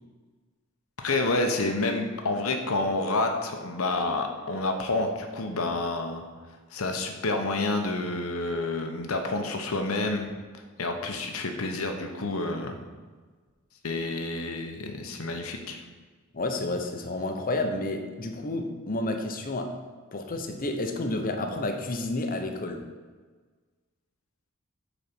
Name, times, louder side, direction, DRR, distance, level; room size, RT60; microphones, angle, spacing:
voice 1, 1.0-6.2 6.7-10.3 10.8-12.8 13.8-15.8, left 2 dB, 85° left, 4 dB, 0.9 m, -29 dB
voice 2, 16.3-19.8 20.1-22.8, left 2 dB, 45° left, 5 dB, 0.8 m, -30 dB
6.7 x 4.2 x 5.9 m, 1.4 s
head